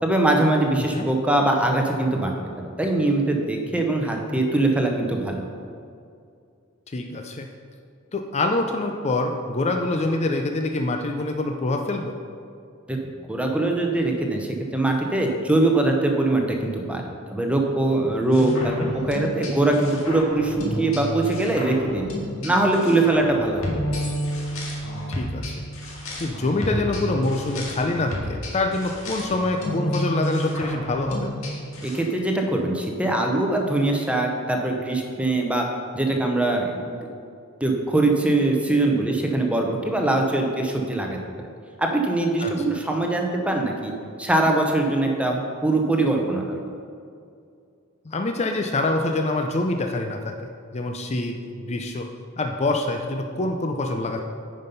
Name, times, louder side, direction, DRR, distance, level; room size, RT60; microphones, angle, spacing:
voice 1, 0.0-2.3 2.8-5.4 12.9-13.0 13.3-17.0 17.3-22.1 22.4-23.7 31.8-35.7 35.9-37.0 37.6-41.5 41.8-43.9 44.2-46.6, right 2 dB, 5° right, 1 dB, 0.8 m, -22 dB
voice 2, 6.9-7.5 8.1-12.1 18.6-18.9 25.1-25.5 26.2-31.3 42.4-42.5 48.1-50.3 50.7-52.1 52.4-54.2, left 2 dB, 30° left, 4 dB, 0.5 m, -25 dB
sound 1, 18.3-32.0, equal, 80° left, 2.0 m, -31 dB
9.8 x 5.3 x 5.4 m, 2.4 s
head